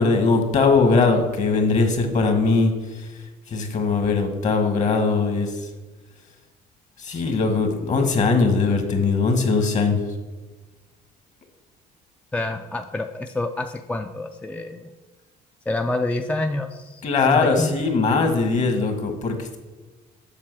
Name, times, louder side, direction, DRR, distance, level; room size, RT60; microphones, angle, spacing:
voice 1, 0.0-2.7 3.5-5.5 7.0-10.0 17.0-19.6, left 4 dB, 45° left, 5 dB, 1.5 m, -20 dB
voice 2, 12.3-14.9 15.7-17.0 17.3-17.9, left 2 dB, 10° left, 6 dB, 0.3 m, -27 dB
7.4 x 4.7 x 6.1 m, 1.2 s
cardioid pair, 110°, 17 cm